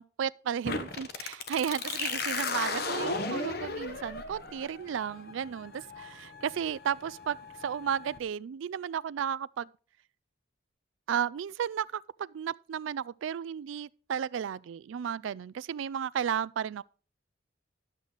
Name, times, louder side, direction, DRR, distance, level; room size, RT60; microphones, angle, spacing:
voice 1, 0.0-9.7 11.1-16.8, right 8 dB, 85° right, 0.3 m, -34 dB
sound 1, 0.6-8.2, left 3 dB, 55° left, 1.0 m, -36 dB
11.5 x 7.6 x 4.0 m
head